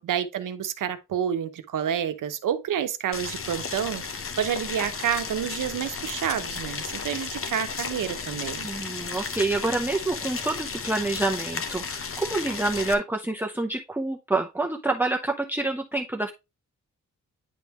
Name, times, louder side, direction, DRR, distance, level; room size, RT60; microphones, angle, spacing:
voice 1, 0.0-8.7, right 9 dB, 90° right, 0.8 m, -29 dB
Boiling, 3.1-12.9, left 5 dB, 45° left, 0.8 m, -34 dB
voice 2, 8.6-16.3, right 2 dB, 5° right, 0.6 m, -27 dB
9.8 x 3.5 x 2.9 m
wide cardioid pair, 100°, 31 cm